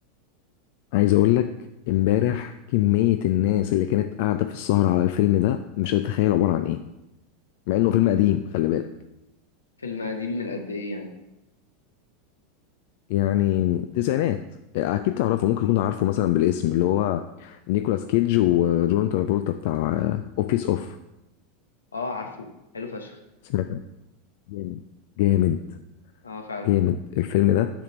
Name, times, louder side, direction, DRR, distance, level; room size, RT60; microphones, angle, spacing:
voice 1, 0.9-1.5 1.9-6.8 7.7-8.9 13.1-14.4 14.7-21.0 23.5-23.8 24.5-24.8 25.2-25.6 26.7-27.7, left 13 dB, 60° left, 9 dB, 0.3 m, -22 dB
voice 2, 9.8-11.1 15.6-15.8 21.9-23.2 26.2-26.8, left 3 dB, 85° left, 5 dB, 0.9 m, -33 dB
7.3 x 3.6 x 6.2 m, 0.92 s
hypercardioid pair, 90°, 0 cm